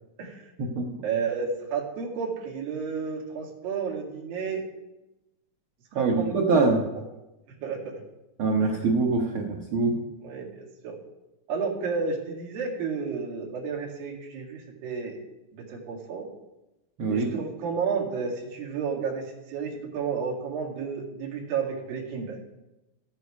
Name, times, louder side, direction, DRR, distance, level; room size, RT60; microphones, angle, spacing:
voice 1, 0.2-0.5 1.0-4.6 6.0-6.4 7.0-7.1 7.6-8.0 8.6-8.8 10.2-11.0 11.5-15.2 15.5-16.3 17.1-22.4, right 5 dB, 75° right, -2 dB, 3.8 m, -31 dB
voice 2, 5.9-6.9 8.4-10.0 17.0-17.3, right 3 dB, 90° right, 0 dB, 1.1 m, -24 dB
13.5 x 9.1 x 4.7 m, 0.98 s
omnidirectional pair, 4.2 m